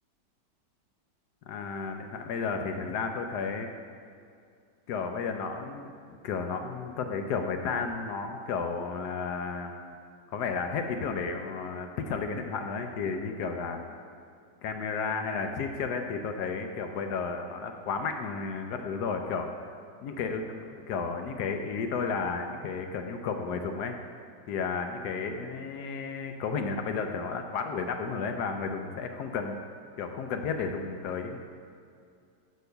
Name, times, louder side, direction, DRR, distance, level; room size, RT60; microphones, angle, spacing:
voice 1, 1.5-3.7 4.9-9.8 10.3-13.8 14.6-19.5 20.0-24.0 24.5-29.6 30.0-31.5, left 5 dB, 75° left, 5 dB, 1.1 m, -33 dB
6.4 x 5.3 x 6.7 m, 2.3 s
omnidirectional pair, 1.9 m